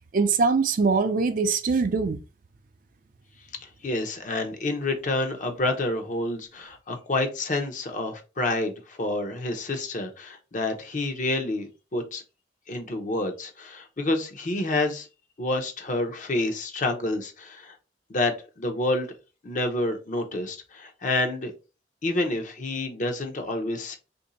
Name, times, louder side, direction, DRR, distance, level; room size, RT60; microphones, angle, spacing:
voice 1, 0.1-2.2, right 4 dB, 50° right, 0.4 m, -22 dB
voice 2, 3.6-12.2 12.7-15.1 15.4-17.8 18.1-19.1 19.4-21.5 22.0-24.0, left 2 dB, 45° left, 0.7 m, -28 dB
3.0 x 2.6 x 4.0 m
head